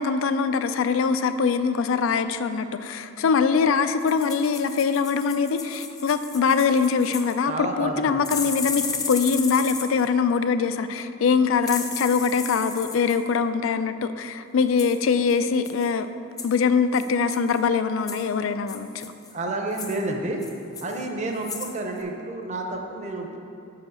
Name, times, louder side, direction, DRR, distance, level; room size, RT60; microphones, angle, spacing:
voice 1, 0.0-16.1 16.4-19.1, left 5 dB, 80° left, 11 dB, 0.3 m, -23 dB
sound 1, 4.0-7.4 8.2-10.1 11.6-13.2 14.8-15.0 15.3-15.4 15.6-15.9 16.4-16.6 16.9-17.6 18.1-18.2 18.7-19.3 19.7-20.0 20.4-21.0 21.4-21.7 22.0-22.1, left 5 dB, 20° left, 0.4 m, -34 dB
voice 2, 7.5-8.3 19.3-20.4 20.8-23.4, right 2 dB, 35° right, 2 dB, 0.7 m, -30 dB
5.5 x 4.8 x 6.3 m, 2.8 s
head